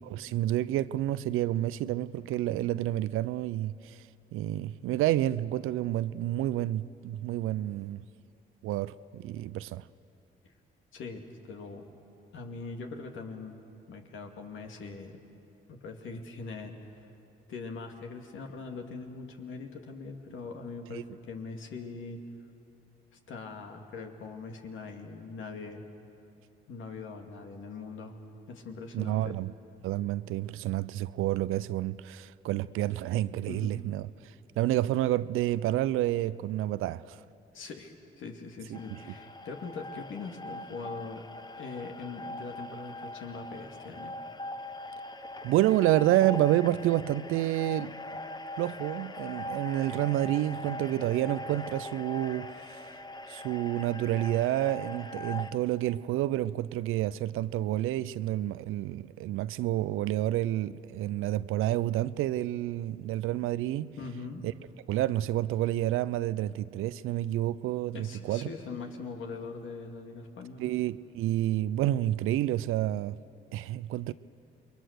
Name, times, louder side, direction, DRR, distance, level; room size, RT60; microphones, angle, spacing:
voice 1, 0.1-4.0 4.3-8.0 8.6-9.8 20.9-21.0 28.9-29.5 29.8-37.2 38.7-39.0 45.4-48.0 48.6-52.9 53.3-63.9 64.4-64.5 64.9-68.5 70.6-73.2 73.5-74.1, right 14 dB, 80° right, 0.5 m, -29 dB
voice 2, 10.9-11.2 11.5-11.8 12.3-13.6 13.9-15.2 15.7-17.0 17.5-22.2 23.3-25.8 26.7-28.1 28.5-29.4 33.5-33.7 37.5-41.3 41.6-44.1 64.0-64.4 67.9-70.7, left 4 dB, 75° left, 2.3 m, -41 dB
sound 1, 38.7-55.5, left 1 dB, 20° left, 1.0 m, -41 dB
28.0 x 21.5 x 6.5 m
supercardioid pair, 60°, 21 cm